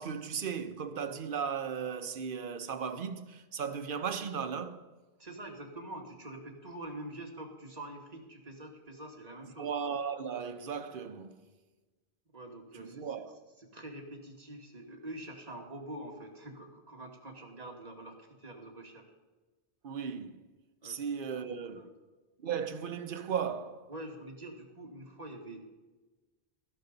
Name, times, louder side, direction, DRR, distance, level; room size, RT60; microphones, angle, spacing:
voice 1, 0.0-4.8 9.6-11.4 12.8-13.4 19.8-20.4 20.8-21.9 22.4-23.9, right 7 dB, 55° right, 0.9 m, -36 dB
voice 2, 5.2-9.7 12.3-13.2 13.6-19.0 20.8-21.0 21.3-21.9 23.9-25.6, right 1 dB, 40° right, 1.8 m, -45 dB
13.5 x 11.0 x 3.9 m
omnidirectional pair, 1.1 m